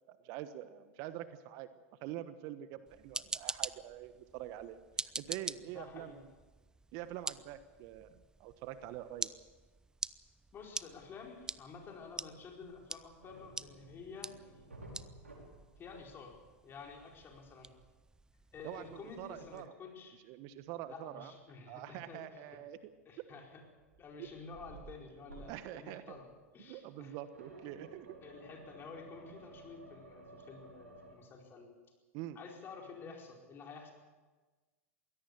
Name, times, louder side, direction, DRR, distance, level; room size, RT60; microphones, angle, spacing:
voice 1, 0.1-1.7 2.0-6.2 6.9-9.3 18.6-19.7 20.3-21.3 21.7-22.9 24.2-24.3 25.5-26.2 26.6-28.1 32.1-32.4, right 13 dB, 50° right, 12 dB, 1.2 m, -45 dB
sound 1, 2.9-19.7, right 3 dB, 10° right, 0.6 m, -46 dB
voice 2, 5.6-6.2 10.5-14.6 15.8-17.7 18.5-20.2 20.9-22.6 23.0-23.6 24.0-27.2 28.2-31.7 32.3-33.9, left 4 dB, 30° left, 1 dB, 4.7 m, -51 dB
sound 2, 13.2-16.5 16.7-17.0 20.4-20.5 22.8-23.3 23.8-25.8 26.1-26.4 27.3-31.1, right 2 dB, 90° right, 5.1 m, -54 dB
22.5 x 17.0 x 6.8 m, 1.3 s
hypercardioid pair, 95°, 7 cm